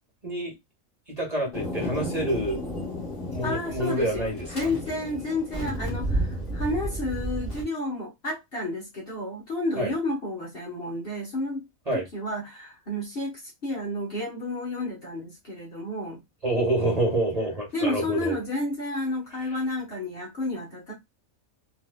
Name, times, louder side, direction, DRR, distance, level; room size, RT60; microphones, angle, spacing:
voice 1, 0.2-0.5 1.2-2.6 3.3-4.7 9.8-9.9 11.9-12.1 16.4-18.3, right 1 dB, 30° right, 1.2 m, -27 dB
Thunder, 1.5-7.6, equal, 30° left, 2.0 m, -32 dB
voice 2, 3.4-11.7 11.9-16.2 17.7-20.9, left 2 dB, 45° left, 1.2 m, -31 dB
3.8 x 2.7 x 2.2 m
omnidirectional pair, 1.5 m